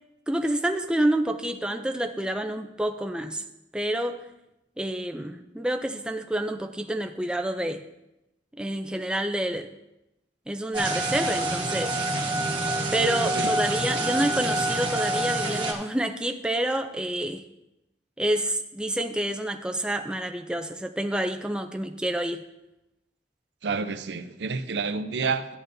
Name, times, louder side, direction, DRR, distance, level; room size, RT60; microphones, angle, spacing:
voice 1, 0.3-3.4 3.7-4.2 4.8-7.8 8.6-9.7 10.5-12.0 12.9-17.4 18.2-22.4, right 1 dB, 5° right, 5 dB, 0.4 m, -28 dB
sound 1, 10.7-15.7, right 1 dB, 25° right, 1.2 m, -27 dB
voice 2, 23.6-25.5, right 4 dB, 75° right, 10 dB, 0.6 m, -29 dB
13.0 x 8.7 x 2.6 m, 0.93 s
head